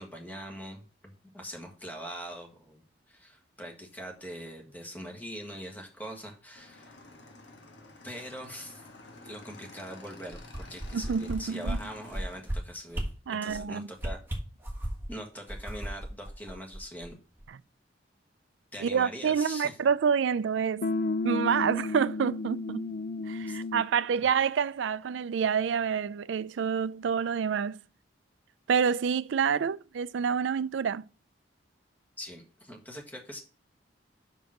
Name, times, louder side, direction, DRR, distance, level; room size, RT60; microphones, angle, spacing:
voice 1, 0.0-7.0 8.0-8.8 9.2-14.2 15.1-17.2 18.7-19.7 21.5-21.6 23.5-23.6 32.2-33.4, equal, 10° left, 1.7 m, -42 dB
Motorcycle / Engine, 6.5-12.4, left 2 dB, 70° left, 1.6 m, -50 dB
sound 1, 10.3-11.3 11.6-11.8 12.1-12.6 12.9-13.1 13.5-13.6 14.0-15.1 15.5-17.1 17.4-17.5, right 1 dB, 10° right, 1.5 m, -34 dB
voice 2, 10.9-11.8 13.3-13.9 17.5-17.6 18.8-20.9 21.2-22.8 23.3-27.8 28.7-31.0, right 6 dB, 75° right, 0.4 m, -28 dB
sound 2, 20.8-24.0, left 3 dB, 50° left, 0.4 m, -32 dB
5.9 x 5.2 x 6.4 m
head